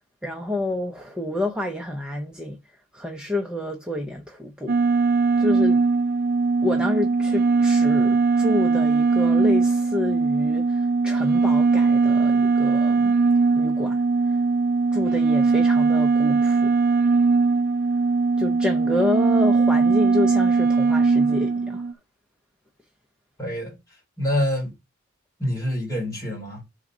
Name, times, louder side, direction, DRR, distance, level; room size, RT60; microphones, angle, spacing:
voice 1, 0.2-2.6 2.9-4.8 5.4-5.8 6.6-13.1 13.6-14.4 14.9-16.7 18.4-21.8, left 2 dB, 5° right, 0.7 m, -29 dB
sound 1, 4.7-21.9, right 4 dB, 45° right, 0.4 m, -20 dB
voice 2, 23.4-23.8 24.2-24.7 25.4-26.6, left 1 dB, 15° left, 3.3 m, -26 dB
5.0 x 4.0 x 5.9 m
head